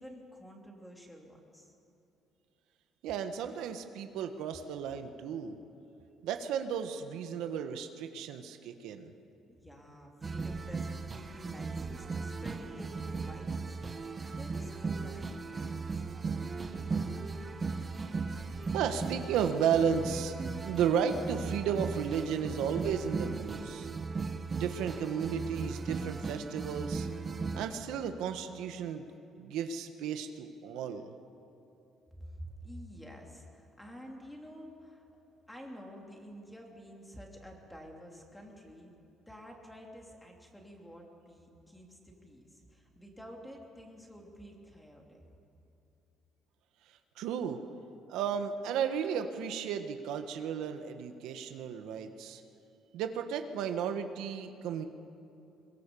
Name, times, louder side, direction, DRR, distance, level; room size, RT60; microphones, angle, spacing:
voice 1, 0.0-1.7 9.5-16.3 32.1-35.1 35.5-38.9 39.3-45.2, equal, 5° left, 0 dB, 3.0 m, -50 dB
voice 2, 3.0-5.6 6.2-9.1 18.1-18.5 18.7-20.3 20.6-23.9 24.5-27.1 27.5-29.1 29.4-31.1 46.9-47.6 48.1-52.4 52.9-54.9, right 7 dB, 90° right, 7 dB, 1.4 m, -34 dB
sound 1, 10.2-27.7, right 4 dB, 25° right, 1.2 m, -37 dB
22.5 x 22.0 x 7.0 m, 2.8 s
cardioid pair, 155°, 0 cm